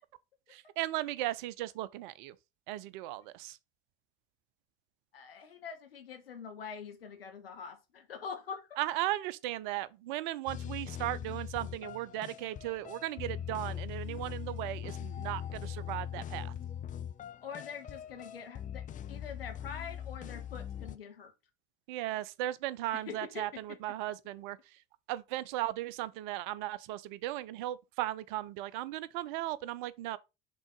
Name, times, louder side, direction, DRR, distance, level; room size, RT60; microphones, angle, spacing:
voice 1, 0.5-2.4 2.7-3.6 8.8-16.6 21.9-24.6 25.1-30.2, right 15 dB, 55° right, 0.6 m, -36 dB
voice 2, 5.1-8.8 17.4-21.3 22.9-23.8, left 6 dB, 75° left, 1.3 m, -44 dB
sound 1, 10.5-21.0, left 9 dB, 25° left, 0.6 m, -41 dB
6.1 x 3.8 x 5.3 m
figure-of-eight pair, 65°, 29 cm